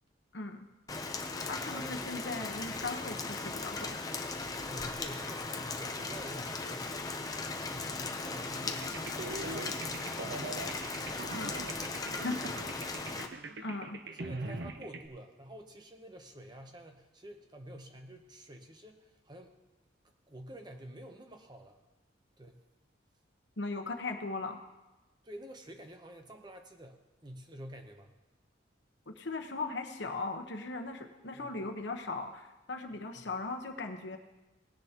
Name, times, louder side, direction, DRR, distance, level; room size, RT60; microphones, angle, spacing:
voice 1, 0.3-0.7 1.5-4.0 11.3-11.7 12.2-12.4 13.6-14.0 23.6-24.6 29.1-34.2, left 3 dB, 65° left, 5 dB, 1.1 m, -38 dB
Rain, 0.9-13.3, left 3 dB, 20° left, 0.6 m, -38 dB
voice 2, 1.6-2.5 3.2-3.3 4.7-6.9 7.7-10.5 11.2-11.5 12.4-12.5 14.1-19.6 20.3-21.8 22.4-22.6 25.2-28.1 31.3-31.7 32.9-33.3, right 1 dB, 20° right, 5 dB, 0.8 m, -49 dB
sound 1, 8.7-15.1, right 2 dB, 60° right, 0.7 m, -42 dB
18.0 x 10.0 x 2.9 m, 1.1 s
head